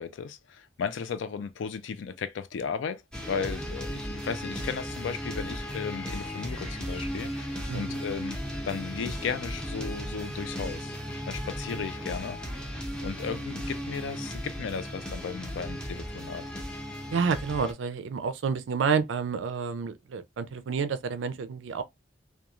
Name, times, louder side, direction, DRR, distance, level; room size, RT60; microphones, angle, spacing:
voice 1, 0.0-3.0 3.3-8.4 8.6-10.9 11.3-12.4 13.0-16.4, left 6 dB, 70° left, 0.3 m, -35 dB
sound 1, 3.1-17.7, equal, 5° left, 0.5 m, -36 dB
sound 2, 5.5-9.5, left 3 dB, 35° left, 0.7 m, -52 dB
voice 2, 7.7-8.0 17.1-21.8, right 6 dB, 70° right, 0.4 m, -29 dB
2.9 x 2.2 x 2.3 m
head